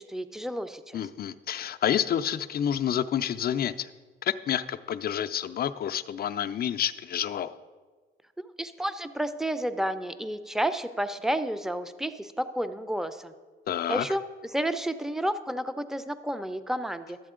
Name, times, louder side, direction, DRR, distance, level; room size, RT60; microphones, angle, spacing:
voice 1, 0.0-1.0 8.6-13.3 13.9-14.2 14.5-17.2, right 1 dB, ahead, 11 dB, 0.5 m, -31 dB
voice 2, 0.9-3.9 4.2-7.6 13.7-14.1, left 9 dB, 50° left, 10 dB, 0.5 m, -29 dB
12.0 x 7.5 x 3.7 m, 1.4 s
cardioid pair, 90°, 20 cm